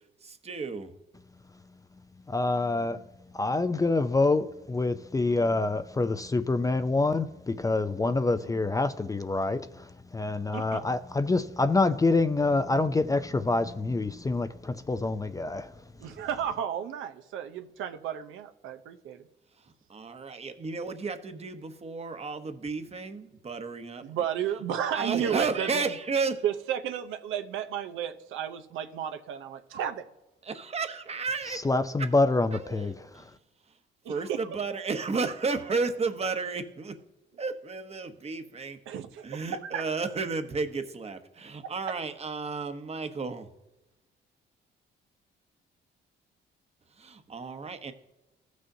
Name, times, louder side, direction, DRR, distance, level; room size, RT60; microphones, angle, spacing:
voice 1, 0.2-0.9 19.9-24.0 24.9-26.4 30.4-31.6 32.0-32.1 32.5-33.3 34.1-37.0 37.4-38.8 39.2-43.5 47.0-47.9, right 4 dB, 30° right, 0.9 m, -33 dB
voice 2, 2.3-3.0 3.3-15.7 31.5-33.2, left 3 dB, 15° left, 0.4 m, -26 dB
sound 1, 2.6-3.0 5.2-5.6 7.0-7.1 8.2-8.8, right 1 dB, 85° left, 2.9 m, -53 dB
voice 3, 16.0-19.3 24.0-25.9 26.4-30.0 34.0-34.4 38.9-39.5 39.7-39.8 41.6-41.7, right 9 dB, 85° right, 0.7 m, -33 dB
15.0 x 6.3 x 2.7 m
cardioid pair, 90°, 20 cm